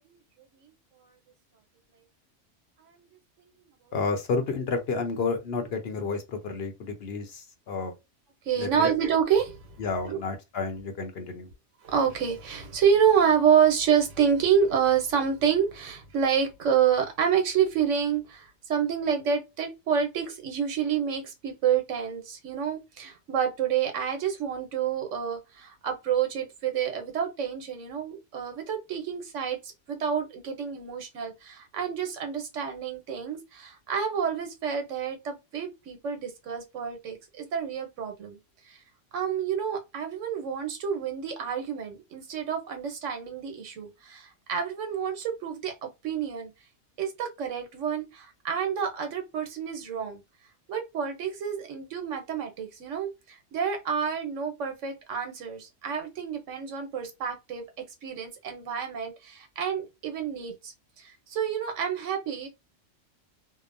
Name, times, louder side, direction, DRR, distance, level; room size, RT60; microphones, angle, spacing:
voice 1, 3.9-7.9 8.6-8.9 9.8-11.5, left 4 dB, 60° left, 0.9 m, -31 dB
voice 2, 8.5-9.6 10.0-10.2 11.8-38.4 38.7-38.8 39.1-46.5 47.0-50.2 50.7-53.1 53.5-62.5, right 7 dB, 85° right, 1.2 m, -28 dB
2.8 x 2.0 x 2.5 m
omnidirectional pair, 1.2 m